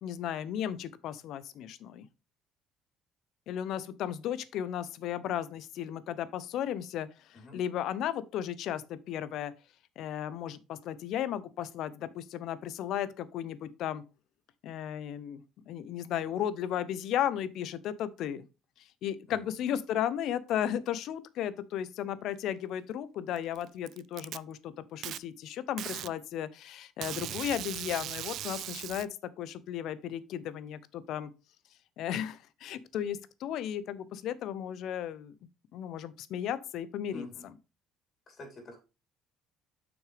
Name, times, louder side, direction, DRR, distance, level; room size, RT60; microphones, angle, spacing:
voice 1, 0.0-2.1 3.5-9.5 10.0-14.0 14.6-15.4 15.7-18.4 19.0-31.3 32.0-35.3 35.7-37.3, left 10 dB, 65° left, 0.7 m, -35 dB
Packing tape duct tape, 23.4-24.4 25.0-25.2 25.8-26.1 27.0-29.0, right 12 dB, 60° right, 0.3 m, -38 dB
voice 2, 37.1-37.5 38.3-38.8, left 2 dB, 40° left, 3.5 m, -45 dB
7.5 x 6.0 x 3.3 m
cardioid pair, 115°, 0 cm